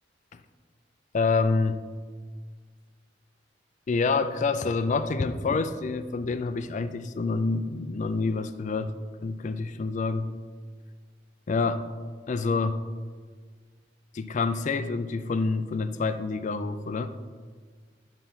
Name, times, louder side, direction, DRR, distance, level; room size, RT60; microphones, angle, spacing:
voice 1, 1.1-1.8 3.9-8.9 9.2-10.2 11.5-11.9 12.3-12.8 14.1-17.1, left 4 dB, 40° left, 11 dB, 0.4 m, -27 dB
10.5 x 4.5 x 5.6 m, 1.5 s
head